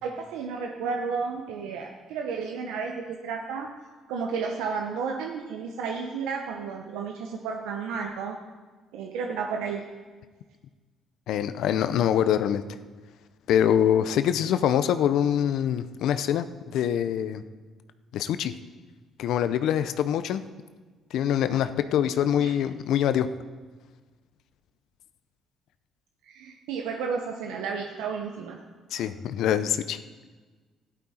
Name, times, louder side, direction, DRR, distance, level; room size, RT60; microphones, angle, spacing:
voice 1, 0.0-3.7 4.1-8.4 8.9-9.8 22.4-22.5 26.2-28.6 28.9-29.1, right 5 dB, 90° right, 2 dB, 0.8 m, -32 dB
voice 2, 11.3-12.6 13.5-16.5 16.7-17.4 18.1-18.5 19.2-20.4 21.1-23.3 28.9-30.0, left 10 dB, 75° left, 12 dB, 0.5 m, -24 dB
13.0 x 11.5 x 4.3 m, 1.4 s
cardioid pair, 85°, 0 cm